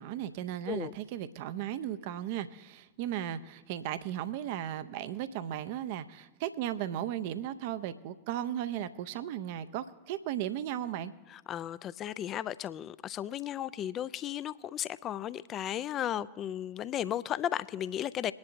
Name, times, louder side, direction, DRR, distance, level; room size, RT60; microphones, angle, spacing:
voice 1, 0.0-11.1, right 11 dB, 50° right, 12 dB, 0.5 m, -36 dB
voice 2, 11.3-18.3, left 11 dB, 30° left, 17 dB, 0.4 m, -35 dB
22.0 x 10.5 x 2.6 m, 1.1 s
figure-of-eight pair, 90°, 0 cm